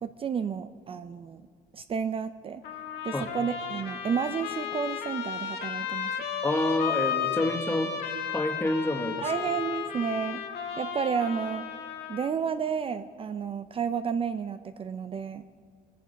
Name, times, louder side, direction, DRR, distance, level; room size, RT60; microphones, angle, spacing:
voice 1, 0.0-1.4 1.7-2.6 3.0-6.1 9.2-10.4 10.8-11.7 12.1-15.4, right 6 dB, 35° right, 10 dB, 0.5 m, -31 dB
Trumpet, 2.6-12.3, left 8 dB, 75° left, 1.8 m, -34 dB
voice 2, 6.4-8.0 8.3-9.3, left 1 dB, 15° left, 7 dB, 1.3 m, -28 dB
23.0 x 10.0 x 5.2 m, 2.3 s
cardioid pair, 110°, 17 cm